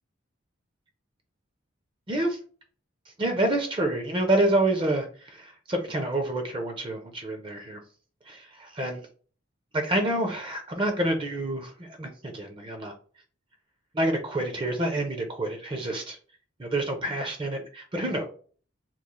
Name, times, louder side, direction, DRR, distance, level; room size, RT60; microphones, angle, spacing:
voice 1, 2.1-2.4 3.2-7.8 8.3-9.0 9.7-12.9 13.9-16.2 16.6-18.3, right 1 dB, 25° right, 5 dB, 0.5 m, -28 dB
3.0 x 2.4 x 3.6 m, 0.42 s
head